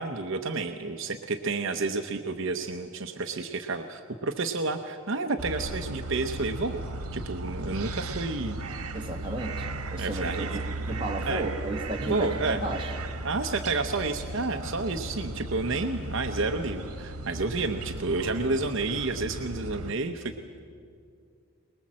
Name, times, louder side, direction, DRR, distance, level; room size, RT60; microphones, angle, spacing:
voice 1, 0.0-6.8 7.1-8.6 10.0-10.6 11.2-11.4 12.1-12.6 13.2-20.3, right 3 dB, 55° right, 6 dB, 0.8 m, -30 dB
sound 1, 5.4-19.9, right 2 dB, 80° right, 1.4 m, -36 dB
voice 2, 8.9-12.9, right 2 dB, 25° right, 1 dB, 1.8 m, -33 dB
23.5 x 20.5 x 7.5 m, 2.2 s
head